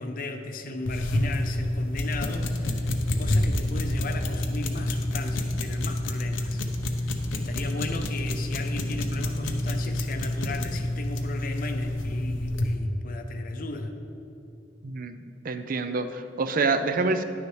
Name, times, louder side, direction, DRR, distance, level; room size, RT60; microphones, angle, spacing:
voice 1, 0.0-2.9 3.2-6.6 7.0-13.9, left 2 dB, 45° left, 6 dB, 0.6 m, -35 dB
Pen Clicking, 0.8-12.8, left 1 dB, 90° left, 0.8 m, -28 dB
voice 2, 14.8-15.2 15.4-17.2, right 3 dB, 45° right, 9 dB, 0.5 m, -26 dB
11.0 x 9.5 x 3.2 m, 2.9 s
head